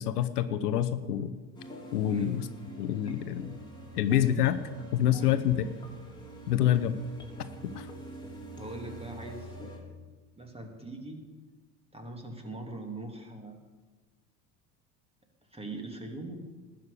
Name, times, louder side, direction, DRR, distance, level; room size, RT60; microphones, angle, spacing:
voice 1, 0.0-1.3 1.9-2.5 2.8-3.5 3.9-4.6 4.9-5.7 6.5-7.0 7.7-7.9, left 11 dB, 70° left, 12 dB, 0.9 m, -27 dB
sound 1, 1.5-9.8, right 1 dB, 10° left, 3.9 m, -45 dB
voice 2, 8.6-9.9 10.4-11.2 11.9-13.6 15.4-16.4, right 2 dB, 10° right, 3 dB, 2.9 m, -41 dB
19.0 x 6.6 x 8.4 m, 1.3 s
figure-of-eight pair, 65°, 48 cm